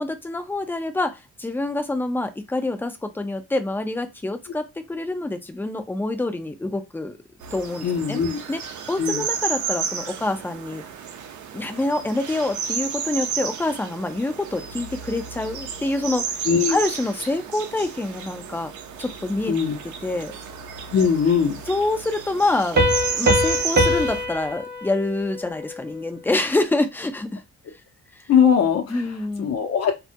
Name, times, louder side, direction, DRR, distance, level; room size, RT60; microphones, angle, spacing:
voice 1, 0.0-7.2 7.5-8.2 8.5-8.6 8.9-10.8 11.5-16.3 16.7-18.7 19.0-19.6 20.0-20.3 21.7-22.8 23.1-27.4 28.9-29.5, left 2 dB, 5° left, 8 dB, 0.4 m, -26 dB
sound 1, 7.4-24.2, right 7 dB, 75° right, 0.5 m, -32 dB
voice 2, 7.8-8.4 9.0-9.2 16.5-16.8 19.5-19.8 20.9-21.6 28.3-29.0 29.4-29.9, left 7 dB, 55° left, 5 dB, 0.7 m, -20 dB
Piano, 22.8-26.2, equal, 35° right, 0.6 m, -23 dB
2.2 x 2.1 x 2.7 m, 0.23 s
cardioid pair, 90°, 30 cm